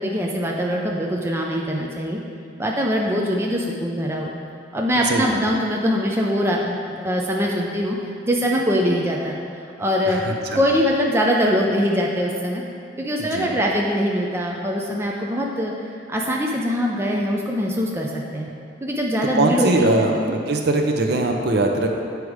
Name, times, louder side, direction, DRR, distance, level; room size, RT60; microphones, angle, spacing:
voice 1, 0.0-2.2 2.6-4.3 4.7-8.0 8.2-9.4 9.8-10.2 10.6-12.6 13.0-18.5 18.8-20.1, equal, 15° right, -2 dB, 0.5 m, -22 dB
voice 2, 4.9-5.4 10.1-10.6 13.2-13.6 19.3-21.9, right 2 dB, 55° right, 3 dB, 0.7 m, -21 dB
8.0 x 4.7 x 4.9 m, 2.4 s
head